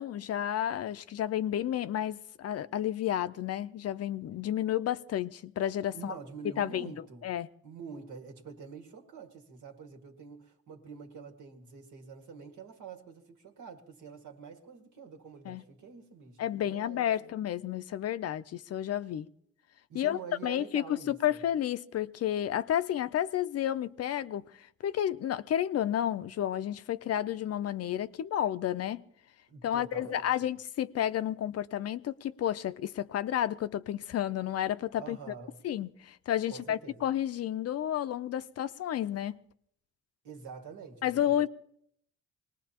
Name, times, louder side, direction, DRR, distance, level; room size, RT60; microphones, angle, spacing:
voice 1, 0.0-6.2 6.6-6.9 7.2-7.5 15.5-15.6 16.4-19.3 19.9-29.0 29.6-35.2 35.6-39.4 41.0-41.5, left 11 dB, 55° left, 0.5 m, -31 dB
voice 2, 5.9-7.3 7.6-17.3 19.9-21.4 29.5-30.5 35.0-35.6 36.5-37.1 40.2-41.5, right 6 dB, 75° right, 1.9 m, -47 dB
25.0 x 19.5 x 2.9 m
cardioid pair, 90°, 30 cm